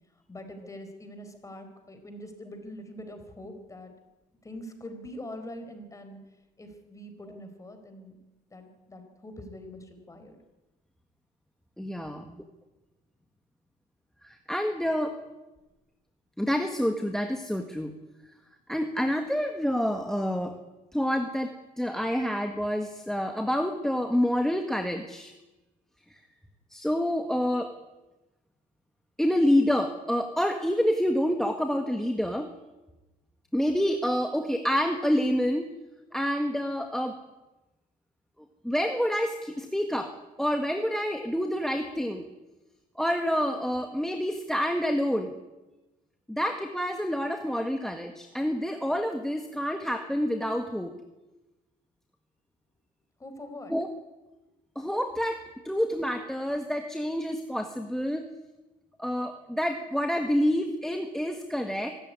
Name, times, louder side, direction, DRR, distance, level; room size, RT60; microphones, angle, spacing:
voice 1, 0.3-3.9 4.4-6.2 6.6-8.2 8.5-10.4 53.2-53.7, left 1 dB, 20° left, 7 dB, 4.7 m, -43 dB
voice 2, 11.8-12.4 14.2-15.2 16.4-17.9 18.7-20.6 20.9-25.3 26.7-27.7 29.2-32.5 33.5-35.7 36.1-37.2 38.6-42.2 43.0-45.3 46.3-50.9 53.7-53.9 54.7-58.2 59.0-61.9, equal, 5° left, 6 dB, 1.7 m, -28 dB
25.0 x 14.0 x 9.7 m, 1.1 s
cardioid pair, 110°, 17 cm